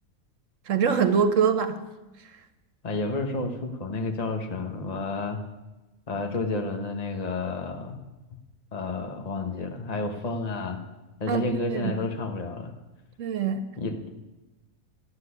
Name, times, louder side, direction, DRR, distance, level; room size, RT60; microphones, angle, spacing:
voice 1, 0.7-1.8 11.3-12.0 13.2-13.6, right 6 dB, 70° right, 10 dB, 1.2 m, -24 dB
voice 2, 2.8-5.4 6.1-8.0 8.7-10.8 11.2-12.7 13.8-14.1, left 3 dB, 30° left, 5 dB, 1.3 m, -30 dB
12.5 x 8.0 x 9.7 m, 1.1 s
omnidirectional pair, 1.4 m